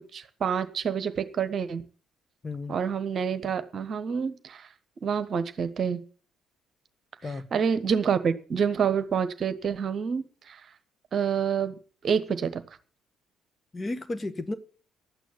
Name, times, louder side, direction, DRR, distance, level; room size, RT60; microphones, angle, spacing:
voice 1, 0.1-1.8 2.7-4.7 5.0-6.0 7.5-10.6 11.1-11.7 12.0-12.6, right 7 dB, 45° right, 1.2 m, -27 dB
voice 2, 2.4-2.8 7.2-7.5 13.7-14.5, left 2 dB, 25° left, 1.5 m, -33 dB
12.5 x 9.1 x 7.1 m
figure-of-eight pair, 50°, 0 cm